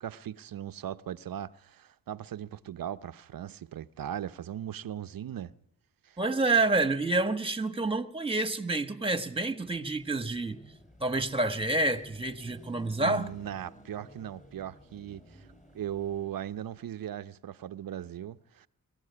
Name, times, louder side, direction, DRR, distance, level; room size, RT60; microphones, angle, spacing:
voice 1, 0.0-5.5 6.0-6.2 13.0-15.5 15.7-18.7, right 10 dB, 80° right, 0.8 m, -38 dB
voice 2, 6.2-10.6 11.0-13.3, right 2 dB, 15° right, 1.4 m, -28 dB
Car passing by / Traffic noise roadway noise / Engine, 9.6-16.9, equal, 25° left, 5.6 m, -54 dB
23.0 x 15.5 x 9.7 m
cardioid pair, 70°, 34 cm